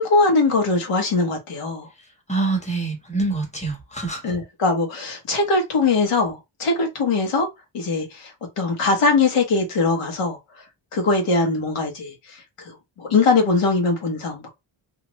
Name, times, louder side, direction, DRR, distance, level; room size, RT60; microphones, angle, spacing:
voice 1, 0.0-1.9 4.2-7.5 7.7-10.4 10.9-12.4 12.6-14.5, left 3 dB, 90° left, 1.5 m, -21 dB
voice 2, 2.3-4.3, right 3 dB, 15° left, 1.3 m, -25 dB
2.8 x 2.5 x 3.1 m
wide cardioid pair, 130°, 50 cm